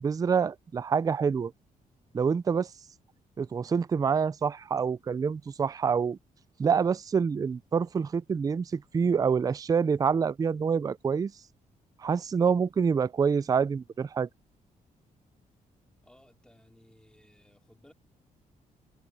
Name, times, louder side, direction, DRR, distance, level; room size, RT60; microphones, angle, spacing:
voice 1, 0.0-1.5 2.1-2.7 3.4-6.2 6.6-11.3 12.0-14.3, right 6 dB, 25° right, 0.4 m, -26 dB
voice 2, 16.0-17.9, left 1 dB, 5° left, 4.2 m, -59 dB
cardioid pair, 120°, 15 cm